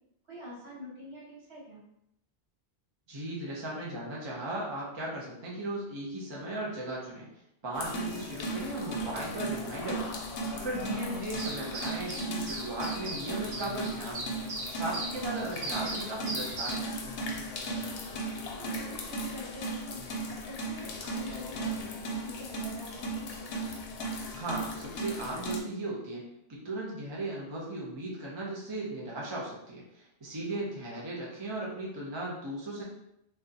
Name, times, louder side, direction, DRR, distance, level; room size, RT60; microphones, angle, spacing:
voice 1, 0.3-1.8 10.8-11.0 17.7-20.0 20.4-23.2 30.8-31.1, left 1 dB, 70° right, -6 dB, 1.5 m, -46 dB
voice 2, 3.1-7.3 7.6-10.2 10.5-14.3 14.7-16.8 24.3-26.2 26.5-32.8, right 1 dB, 30° right, -4 dB, 0.7 m, -37 dB
sound 1, 7.7-25.6, right 1 dB, 70° left, 0.8 m, -36 dB
sound 2, 11.3-16.8, right 1 dB, 90° right, 1.1 m, -39 dB
3.5 x 2.4 x 2.7 m, 0.77 s
omnidirectional pair, 1.1 m